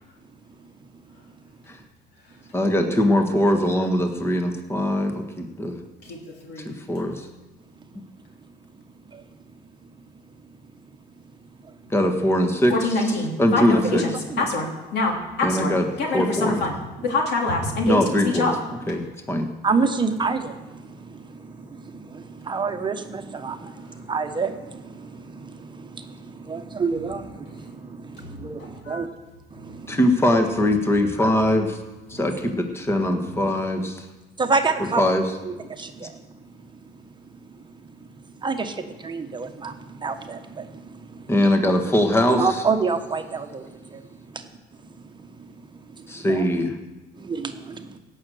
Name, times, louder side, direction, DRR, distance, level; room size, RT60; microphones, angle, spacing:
voice 1, 2.5-5.8 6.6-7.3 11.9-12.7 13.4-14.0 15.4-15.8 16.1-16.6 17.9-18.5 18.9-19.5 29.9-31.8 32.1-34.0 35.0-35.3 41.3-42.6 46.1-46.7, left 1 dB, 15° left, 5 dB, 1.5 m, -21 dB
voice 2, 6.0-6.7 12.7-15.7 16.0-16.8 17.0-18.0 18.3-18.5 23.4-23.5 28.6-29.0, left 3 dB, 75° left, 1 dB, 3.3 m, -25 dB
voice 3, 19.6-29.1 29.5-30.0 34.4-35.0 35.5-36.1 38.4-41.2 42.3-44.0 44.3-44.4 46.1-46.4 47.2-48.0, right 4 dB, 25° right, 6 dB, 1.1 m, -28 dB
17.5 x 6.5 x 7.7 m, 1.2 s
cardioid pair, 110°, 17 cm